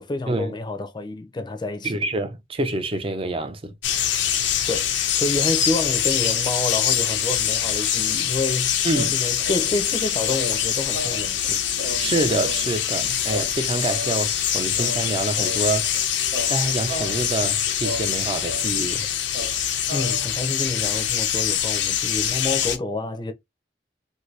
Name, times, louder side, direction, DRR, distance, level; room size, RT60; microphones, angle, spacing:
voice 1, 0.0-1.9 4.7-8.7 9.1-11.6 19.9-23.3, left 2 dB, 25° left, 0.5 m, -28 dB
voice 2, 1.8-3.7 8.8-9.2 12.0-15.9 16.5-19.1, right 2 dB, 30° right, 0.5 m, -26 dB
sound 1, 3.8-22.8, left 9 dB, 80° left, 0.5 m, -24 dB
sound 2, 8.9-13.0 13.3-14.5 14.8-16.0 16.3-18.7 19.0-19.1 19.3-20.5, left 1 dB, 90° right, 0.8 m, -35 dB
2.7 x 2.6 x 3.2 m
head